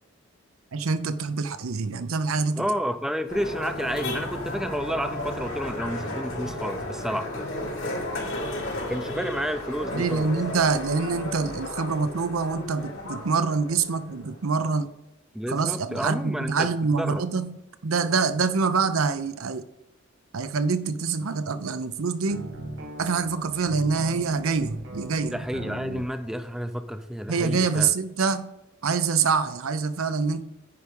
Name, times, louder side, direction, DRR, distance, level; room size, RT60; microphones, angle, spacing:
voice 1, 0.7-2.7 9.9-14.9 15.5-19.7 20.3-22.5 23.0-25.4 27.3-28.5 28.8-30.4, right 4 dB, 90° right, 11 dB, 0.7 m, -25 dB
voice 2, 2.6-7.5 8.9-10.3 15.3-16.7 17.0-17.2 25.3-27.9, equal, ahead, 9 dB, 0.5 m, -30 dB
sound 1, 3.3-14.9, left 1 dB, 80° left, 3.2 m, -34 dB
sound 2, 22.3-26.1, right 1 dB, 65° right, 1.9 m, -38 dB
9.8 x 4.8 x 5.3 m, 0.92 s
head